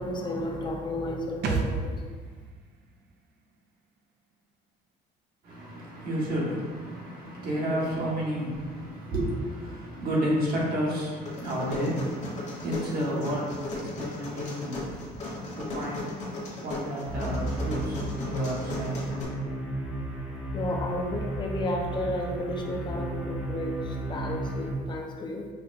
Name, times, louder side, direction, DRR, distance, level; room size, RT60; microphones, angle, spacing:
voice 1, 0.0-1.9 20.5-25.5, left 1 dB, 25° left, 1 dB, 0.6 m, -32 dB
sound 1, 1.4-5.0 5.2-5.3, right 3 dB, 75° right, 0.5 m, -35 dB
voice 2, 5.4-19.3, equal, 60° right, -5 dB, 1.3 m, -31 dB
sound 2, 11.3-19.2, left 2 dB, 45° left, 1.1 m, -36 dB
sound 3, 17.0-24.7, right 1 dB, 10° right, 0.9 m, -33 dB
5.4 x 2.1 x 2.6 m, 1.5 s
cardioid pair, 110°, 17 cm